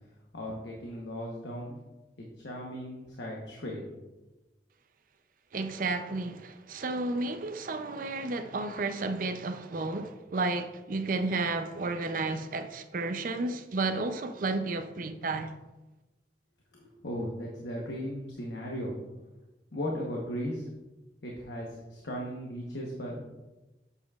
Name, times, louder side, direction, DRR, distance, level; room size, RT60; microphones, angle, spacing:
voice 1, 0.3-1.8 2.4-3.8 16.7-18.9 19.7-20.7 21.2-23.2, equal, 80° left, 1.0 m, -37 dB
voice 2, 5.5-15.6, right 3 dB, 50° right, 0.5 m, -32 dB
8.2 x 7.1 x 2.4 m
head